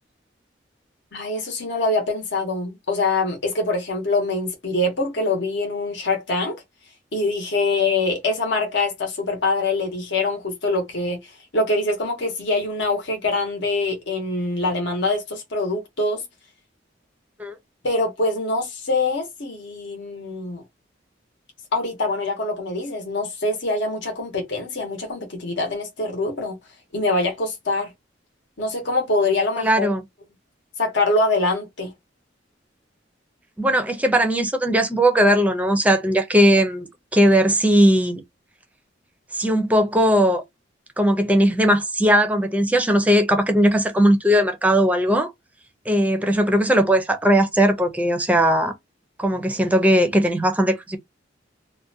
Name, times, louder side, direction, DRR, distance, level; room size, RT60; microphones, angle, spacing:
voice 1, 1.1-6.6 7.1-16.2 17.8-20.6 21.7-26.6 26.9-27.9 28.6-29.9 30.8-31.9, left 2 dB, 70° left, 0.8 m, -24 dB
voice 2, 29.6-30.0 33.6-36.9 37.1-38.2 39.3-40.4 41.0-45.3 45.9-48.7 49.2-51.0, equal, 10° right, 0.4 m, -18 dB
2.5 x 2.1 x 2.6 m
head